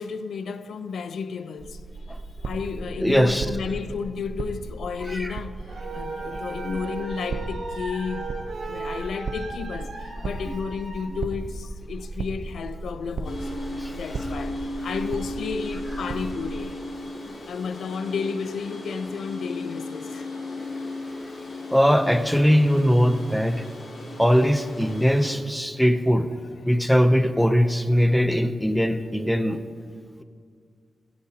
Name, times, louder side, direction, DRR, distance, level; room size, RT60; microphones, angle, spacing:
voice 1, 0.0-1.8 2.4-8.3 8.6-16.7 17.5-20.3 27.9-28.2, left 5 dB, 85° left, 0.5 m, -32 dB
sound 1, 1.6-16.6, right 3 dB, 50° right, 0.7 m, -36 dB
voice 2, 3.0-3.5 5.1-5.4 6.6-6.8 13.7-13.9 15.0-15.1 21.7-23.7 24.2-26.3 26.6-29.6, equal, ahead, 0.6 m, -21 dB
sound 2, 5.6-11.0, right 3 dB, 85° right, 3.9 m, -36 dB
sound 3, 13.2-25.3, left 1 dB, 50° left, 2.7 m, -35 dB
17.0 x 16.0 x 2.8 m
wide cardioid pair, 175°, 0 cm